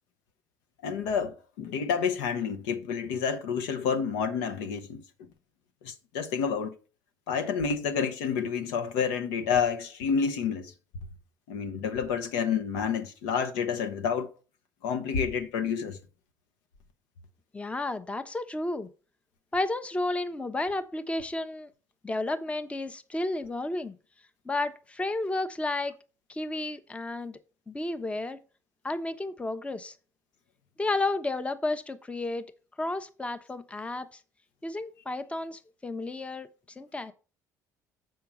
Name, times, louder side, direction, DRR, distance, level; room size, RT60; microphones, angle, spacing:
voice 1, 0.8-5.0 5.8-6.7 7.3-10.7 11.5-14.3 14.8-16.0, left 6 dB, 65° left, 0.8 m, -29 dB
voice 2, 17.5-18.9 19.5-21.7 22.0-24.0 24.4-26.0 26.3-27.4 27.7-28.4 28.8-30.0 30.8-32.4 32.8-34.2 34.6-36.5 36.8-37.1, left 2 dB, 15° left, 0.8 m, -32 dB
7.6 x 5.7 x 5.2 m
figure-of-eight pair, 55°, 9 cm